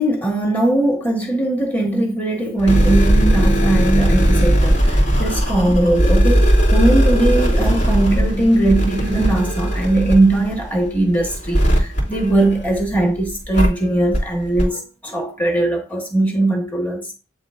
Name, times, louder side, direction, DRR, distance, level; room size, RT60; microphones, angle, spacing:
voice 1, 0.0-17.1, right 2 dB, 10° left, 1.3 m, -19 dB
sound 1, 2.6-13.0 13.5-13.7 14.1-14.2 14.6-14.7, equal, 60° left, 3.1 m, -17 dB
10.5 x 3.5 x 2.5 m
head